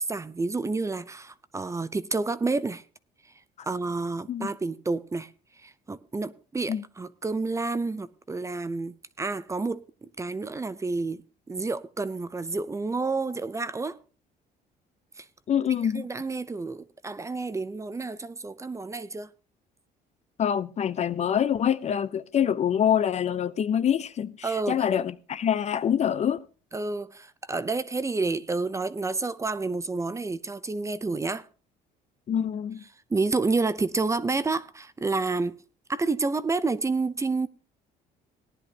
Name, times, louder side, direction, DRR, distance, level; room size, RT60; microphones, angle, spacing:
voice 1, 0.0-2.8 3.6-5.3 5.6-14.0 15.2-15.3 15.9-19.3 24.4-24.8 26.7-31.5 33.1-35.6 35.9-37.5, right 3 dB, 15° right, 0.6 m, -29 dB
voice 2, 15.5-16.0 20.4-26.4 32.3-32.8, left 9 dB, 40° left, 0.5 m, -25 dB
18.0 x 10.5 x 2.8 m
cardioid pair, 110°, 17 cm